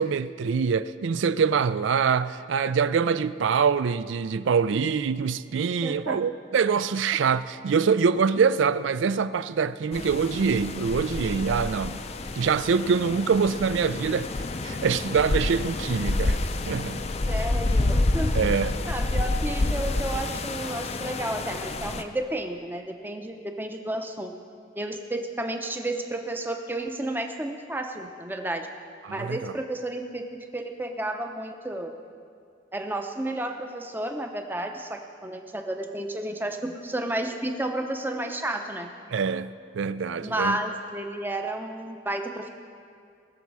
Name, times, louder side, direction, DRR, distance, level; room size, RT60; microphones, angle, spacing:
voice 1, 0.0-12.0 12.4-16.4 16.7-17.0 18.3-18.8 29.0-29.5 39.1-40.6, right 6 dB, 70° right, 0.4 m, -24 dB
voice 2, 5.8-6.3 13.0-13.2 17.3-18.4 18.8-24.3 24.8-28.7 29.1-31.9 32.7-38.9 40.2-42.5, right 1 dB, 10° right, 0.6 m, -32 dB
sound 1, 9.9-22.0, left 2 dB, 30° left, 0.4 m, -28 dB
20.5 x 7.1 x 4.7 m
head